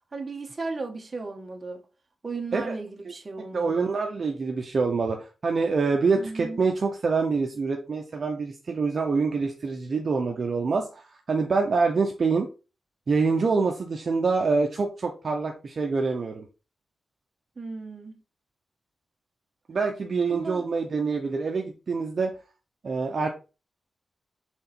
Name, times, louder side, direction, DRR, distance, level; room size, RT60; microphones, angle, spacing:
voice 1, 0.1-1.8 2.2-3.9 6.1-6.6 17.6-18.2 20.3-20.7, right 3 dB, 30° right, 1.3 m, -35 dB
voice 2, 3.4-12.5 13.1-16.4 19.7-22.3 22.8-23.3, right 4 dB, 50° right, 0.8 m, -26 dB
6.3 x 3.9 x 4.4 m
wide cardioid pair, 130°, 0 cm